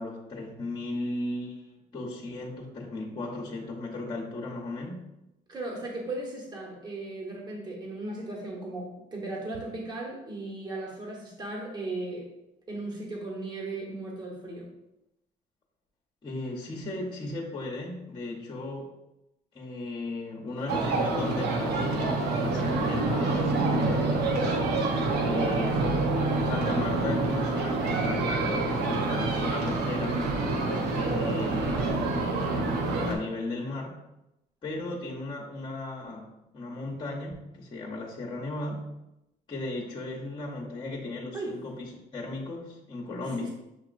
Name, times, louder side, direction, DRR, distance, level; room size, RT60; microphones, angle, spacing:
voice 1, 0.0-5.1 16.2-18.9 19.5-24.4 25.2-25.9 26.4-30.2 30.9-31.9 32.8-34.0 34.6-38.9 39.5-43.5, left 2 dB, 30° left, -3 dB, 0.9 m, -36 dB
voice 2, 5.5-12.3 12.7-14.7 25.1-25.6 41.3-41.6 43.4-43.5, right 2 dB, 25° right, -2 dB, 1.3 m, -37 dB
sound 1, 20.7-33.2, right 2 dB, 80° right, 0.8 m, -27 dB
7.0 x 2.8 x 2.5 m, 0.89 s
cardioid pair, 110°, 17 cm